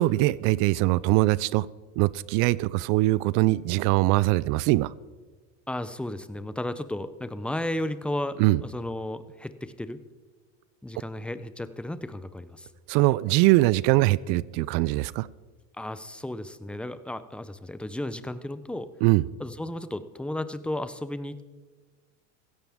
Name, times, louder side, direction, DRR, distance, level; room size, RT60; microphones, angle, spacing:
voice 1, 0.0-1.7 2.0-4.9 8.4-8.6 12.9-15.3 19.0-19.2, right 19 dB, 55° right, 21 dB, 0.5 m, -22 dB
voice 2, 5.7-10.0 10.8-12.7 15.8-18.9 19.4-21.5, left 1 dB, 5° left, 13 dB, 0.6 m, -34 dB
16.5 x 15.0 x 3.6 m, 1.4 s
supercardioid pair, 105°, 39 cm